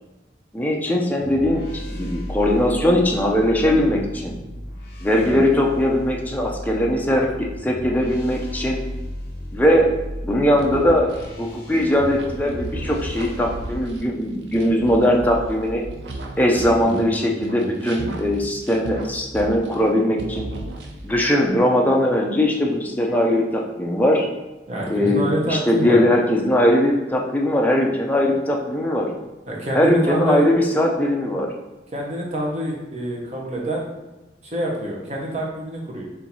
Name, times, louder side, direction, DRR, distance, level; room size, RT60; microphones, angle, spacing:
voice 1, 0.5-4.4 5.0-8.8 9.5-9.9 10.2-11.1 11.4-15.8 16.4-20.5 21.0-24.2 24.9-29.1 29.7-31.5, left 1 dB, 10° left, 0 dB, 0.6 m, -20 dB
sound 1, 1.2-14.0, left 1 dB, 55° left, 1.2 m, -35 dB
sound 2, 10.6-17.1 17.4-19.9 20.2-21.2, right 2 dB, 75° right, 0.6 m, -35 dB
voice 2, 24.7-26.0 29.5-30.5 31.9-33.9 34.4-36.0, right 1 dB, 40° right, -2 dB, 1.0 m, -26 dB
4.4 x 2.7 x 4.0 m, 1.1 s
head